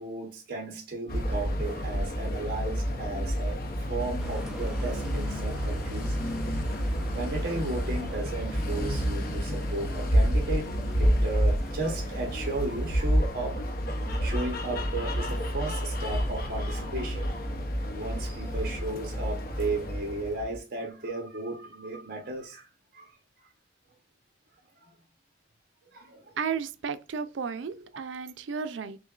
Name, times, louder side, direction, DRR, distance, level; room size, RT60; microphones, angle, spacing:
voice 1, 0.0-6.2 7.1-10.7 11.0-13.6 14.2-17.3 17.9-22.7 22.9-23.1 24.8-24.9 25.9-26.2, right 2 dB, 50° right, 0.9 m, -35 dB
sound 1, 1.1-20.6, equal, 55° left, 0.7 m, -29 dB
sound 2, 4.2-13.0, right 1 dB, 5° right, 0.4 m, -46 dB
voice 2, 26.4-29.0, right 6 dB, 85° right, 0.4 m, -33 dB
6.1 x 2.2 x 2.4 m
head